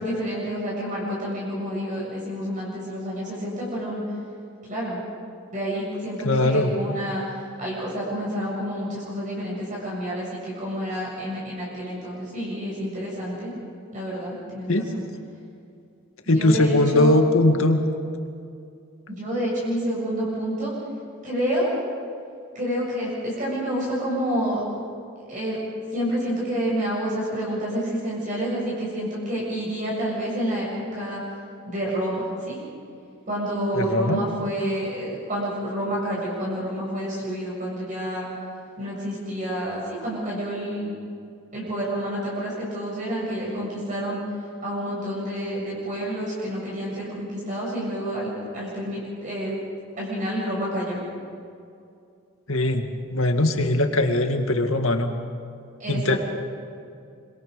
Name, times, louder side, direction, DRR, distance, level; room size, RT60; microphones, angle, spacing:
voice 1, 0.0-4.0 4.7-5.0 5.5-7.2 7.6-13.5 13.9-15.1 16.3-17.2 19.1-20.7 21.2-21.7 22.5-24.6 25.3-25.6 25.9-31.2 31.7-32.6 33.3-38.3 38.8-40.9 41.5-44.2 44.6-49.6 50.0-51.0 55.8-56.2, equal, 35° right, -6 dB, 7.2 m, -29 dB
voice 2, 6.2-6.7 14.7-14.9 16.3-17.8 33.7-34.2 52.5-55.1 55.9-56.2, left 1 dB, 80° left, 5 dB, 2.1 m, -20 dB
26.0 x 25.5 x 5.3 m, 2.5 s
head